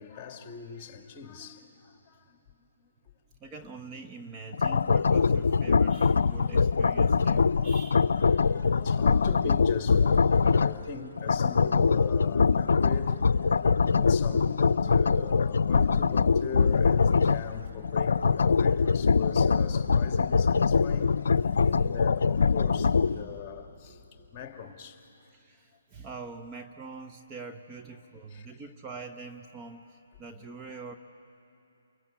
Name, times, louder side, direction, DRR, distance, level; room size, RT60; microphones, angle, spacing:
voice 1, 0.0-2.4 8.3-13.2 13.5-21.1 21.6-24.0 24.3-25.0 28.3-28.5, left 6 dB, 25° left, 2.2 m, -40 dB
voice 2, 3.4-8.2 21.6-21.8 23.1-23.4 25.3-31.0, right 4 dB, 20° right, 1.0 m, -44 dB
sound 1, 4.5-10.9 11.2-17.5 17.8-23.2, left 5 dB, 70° left, 0.5 m, -23 dB
sound 2, 17.0-24.8, left 6 dB, 50° left, 0.9 m, -44 dB
28.5 x 22.0 x 8.8 m
figure-of-eight pair, 140°, 0 cm